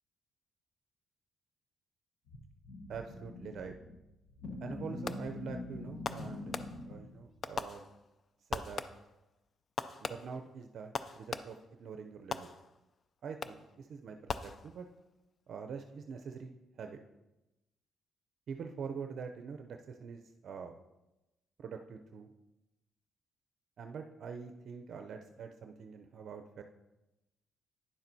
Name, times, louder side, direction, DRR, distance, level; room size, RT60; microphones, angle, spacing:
sound 1, 2.3-7.4, left 2 dB, 80° left, 1.0 m, -44 dB
voice 1, 2.9-3.7 4.6-7.9 8.5-8.8 10.0-12.5 13.2-14.9 15.5-17.0 18.5-20.8 21.6-22.3 23.8-26.6, right 6 dB, 65° right, 5 dB, 0.5 m, -45 dB
Fireworks, 5.1-5.5 6.0-7.0 7.4-8.2 8.5-9.2 9.8-11.8 12.3-12.9 13.4-13.8 14.3-15.0, left 5 dB, 45° left, 0.4 m, -41 dB
10.0 x 7.2 x 2.7 m, 0.98 s
cardioid pair, 90°, 0 cm